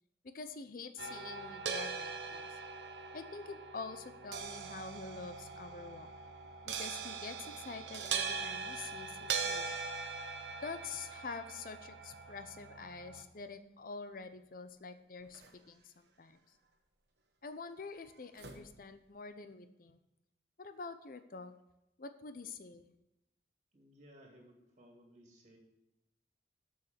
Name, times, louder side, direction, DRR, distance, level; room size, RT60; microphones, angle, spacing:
voice 1, 0.2-2.6 3.1-6.1 6.6-9.8 10.6-16.4 17.4-20.0 20.6-21.5 22.0-22.9, left 4 dB, 50° left, 10 dB, 0.7 m, -46 dB
sound 1, 1.0-13.2, right 5 dB, 90° right, 0.8 m, -41 dB
sound 2, 12.9-19.3, right 2 dB, 70° right, 1.2 m, -63 dB
voice 2, 23.7-25.6, equal, 40° right, 0 dB, 2.4 m, -59 dB
7.0 x 6.5 x 6.7 m, 0.89 s
head